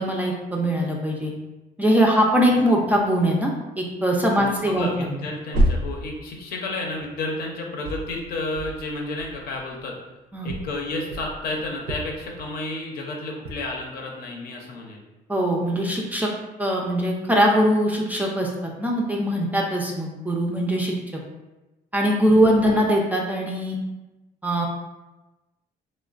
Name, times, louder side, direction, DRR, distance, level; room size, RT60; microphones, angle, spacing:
voice 1, 0.0-1.3 1.8-3.5 3.8-5.2 10.3-10.5 15.3-16.3 16.6-20.9 21.9-23.8 24.4-24.7, equal, 10° right, -1 dB, 0.3 m, -21 dB
voice 2, 4.4-9.9 10.4-15.0 22.4-22.7, left 2 dB, 65° left, 0 dB, 0.6 m, -31 dB
sound 1, 4.8-7.5 7.8-9.9 10.5-12.8 13.4-13.7, equal, 75° right, 0.5 m, -29 dB
3.0 x 2.1 x 2.4 m, 1.1 s
cardioid pair, 110°, 17 cm